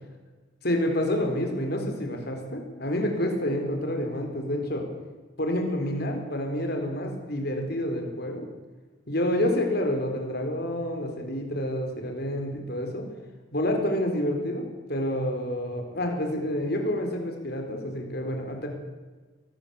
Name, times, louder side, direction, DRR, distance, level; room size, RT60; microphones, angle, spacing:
voice 1, 0.6-4.9 5.4-8.4 9.1-13.1 13.5-18.7, left 1 dB, 55° left, 3 dB, 4.3 m, -28 dB
23.5 x 18.5 x 7.2 m, 1.3 s
head